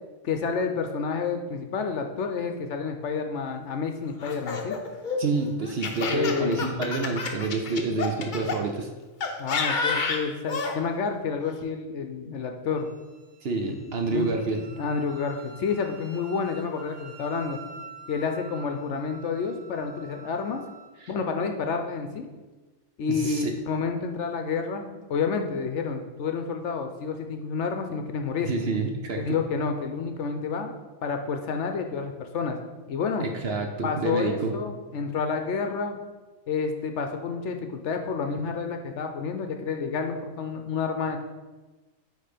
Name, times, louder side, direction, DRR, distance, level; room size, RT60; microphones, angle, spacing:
voice 1, 0.2-4.8 6.0-6.7 9.4-12.9 13.7-13.8 14.1-14.3 14.8-17.6 18.1-20.6 21.1-22.3 23.0-28.5 29.2-30.8 31.0-32.6 32.9-33.3 33.8-36.0 36.5-41.2, left 5 dB, 65° left, 5 dB, 0.9 m, -29 dB
Laughter, 4.2-8.6 9.2-10.8, left 4 dB, 45° left, 0.7 m, -29 dB
voice 2, 5.2-8.9 13.4-14.7 21.0-21.1 23.1-23.5 28.4-29.4 33.2-34.5, right 3 dB, 55° right, 3 dB, 0.8 m, -28 dB
Wind instrument woodwind instrument, 12.7-20.9, right 4 dB, 90° right, 1.2 m, -47 dB
8.9 x 3.3 x 5.0 m, 1.2 s
omnidirectional pair, 1.4 m